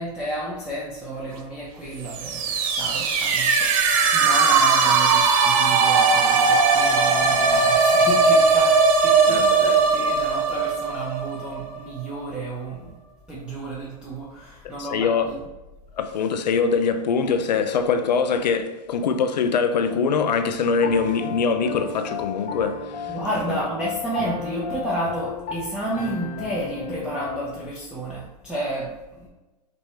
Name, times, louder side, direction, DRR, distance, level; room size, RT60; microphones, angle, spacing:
voice 1, 0.0-12.9 13.3-15.4 23.1-29.3, right 1 dB, 5° right, 0.8 m, -31 dB
sound 1, 2.0-11.8, right 4 dB, 55° right, 0.7 m, -19 dB
voice 2, 9.3-10.1 14.8-15.4 16.0-23.1 23.5-23.6, left 5 dB, 90° left, 0.6 m, -23 dB
Piano, 20.8-27.7, left 5 dB, 40° left, 0.7 m, -34 dB
5.3 x 3.0 x 3.1 m
hypercardioid pair, 125°, 21 cm